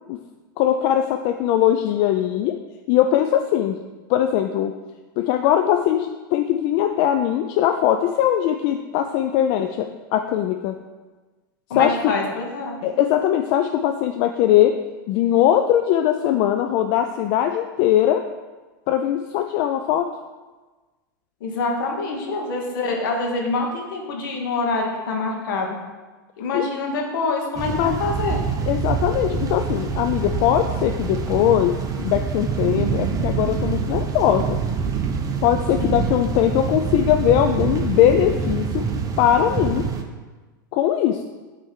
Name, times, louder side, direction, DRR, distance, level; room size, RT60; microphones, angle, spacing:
voice 1, 0.6-2.6 2.9-3.8 4.1-4.7 5.2-10.8 11.8-12.0 12.8-14.7 15.1-18.2 18.9-20.1 26.5-26.7 27.8-28.0 28.7-34.6 35.4-38.8 39.2-39.8 40.7-41.2, left 11 dB, 50° left, 6 dB, 0.4 m, -20 dB
voice 2, 11.7-12.8 21.4-25.8 26.4-28.4 35.8-36.1, left 3 dB, 70° left, 1 dB, 1.5 m, -25 dB
sound 1, 27.6-40.0, right 5 dB, 30° right, 0.8 m, -25 dB
8.6 x 3.4 x 4.6 m, 1.3 s
hypercardioid pair, 105°, 11 cm